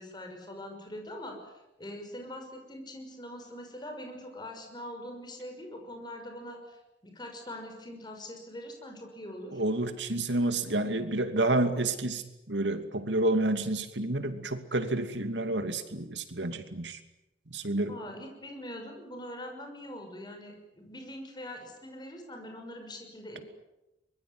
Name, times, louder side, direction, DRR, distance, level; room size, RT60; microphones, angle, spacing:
voice 1, 0.0-1.5 1.8-9.6 17.9-23.4, left 1 dB, 25° left, 4 dB, 6.1 m, -43 dB
voice 2, 9.5-17.0 17.5-18.0, right 2 dB, 80° right, 9 dB, 2.6 m, -29 dB
24.0 x 21.5 x 9.7 m, 0.97 s
head